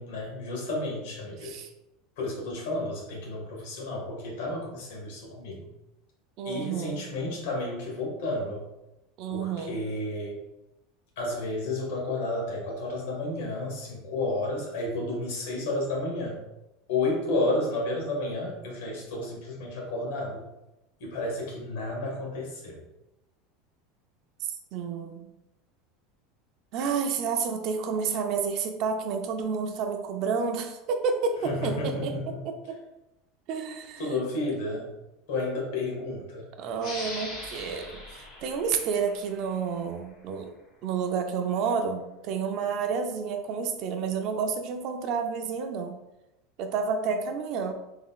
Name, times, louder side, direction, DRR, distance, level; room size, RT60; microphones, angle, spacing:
voice 1, 0.0-1.5 2.2-5.7 6.4-8.6 9.3-10.4 11.2-16.4 16.9-20.4 21.0-22.8 31.4-32.2 34.0-34.9 35.3-36.4, left 2 dB, 70° left, -2 dB, 1.5 m, -31 dB
voice 2, 6.4-7.0 9.2-9.8 24.7-25.3 26.7-32.8 33.5-34.2 36.6-40.5 40.8-45.9 46.6-47.7, right 5 dB, 40° right, 6 dB, 0.4 m, -30 dB
sound 1, 36.8-40.0, left 2 dB, 40° left, 1.2 m, -41 dB
3.7 x 3.6 x 2.3 m, 0.94 s
supercardioid pair, 170°, 0 cm